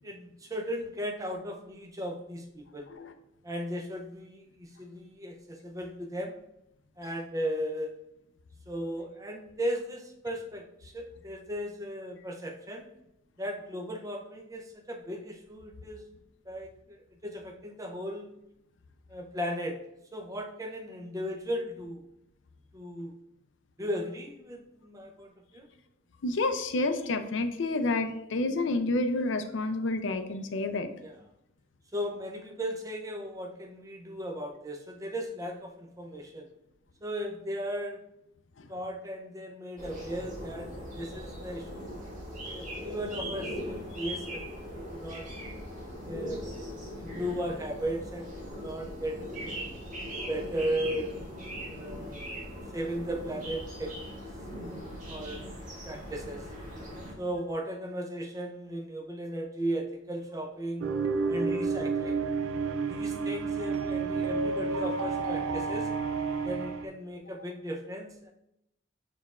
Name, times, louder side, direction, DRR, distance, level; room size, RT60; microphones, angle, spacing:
voice 1, 0.0-2.9 3.4-6.3 7.0-7.9 8.7-12.9 13.4-16.1 16.4-18.3 19.1-19.8 20.1-22.0 22.7-23.1 23.8-25.7 31.0-31.1 31.9-36.5 37.0-38.0 38.7-41.9 42.5-45.2 46.1-46.5 47.0-49.7 50.3-51.1 51.7-52.4 52.7-54.2 55.1-55.5 55.8-56.5 57.2-60.9 61.3-62.2 62.9-65.9 66.4-68.3, equal, 15° right, 1 dB, 0.6 m, -36 dB
voice 2, 26.2-30.9 38.6-38.7 42.6-42.7, left 2 dB, 70° left, 8 dB, 0.5 m, -29 dB
sound 1, 39.8-57.1, equal, 40° right, 1.5 m, -40 dB
sound 2, 60.8-66.9, right 4 dB, 90° right, 0.4 m, -30 dB
6.4 x 3.4 x 2.4 m, 0.81 s
head